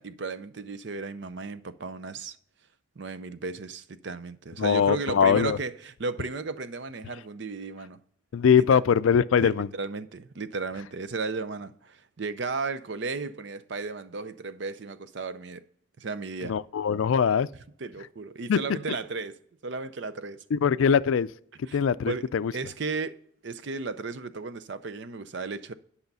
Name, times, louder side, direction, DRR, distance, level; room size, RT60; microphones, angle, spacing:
voice 1, 0.0-2.4 3.0-8.0 8.6-8.8 9.4-15.6 16.0-16.6 17.8-20.4 21.7-21.8 22.0-23.2 23.4-25.7, right 4 dB, 60° right, 0.5 m, -35 dB
voice 2, 4.6-5.6 8.3-9.7 16.5-17.5 18.5-18.6 20.5-21.3 21.7-22.5, left 7 dB, 80° left, 0.4 m, -22 dB
10.5 x 5.6 x 5.4 m
head